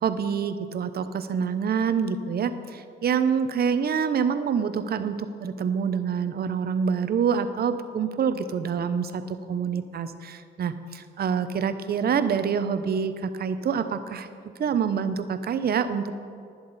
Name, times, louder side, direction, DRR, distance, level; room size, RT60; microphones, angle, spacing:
voice 1, 0.0-14.3 14.6-16.2, right 7 dB, 50° right, 11 dB, 0.7 m, -26 dB
11.5 x 10.5 x 4.1 m, 2.3 s
cardioid pair, 90°, 20 cm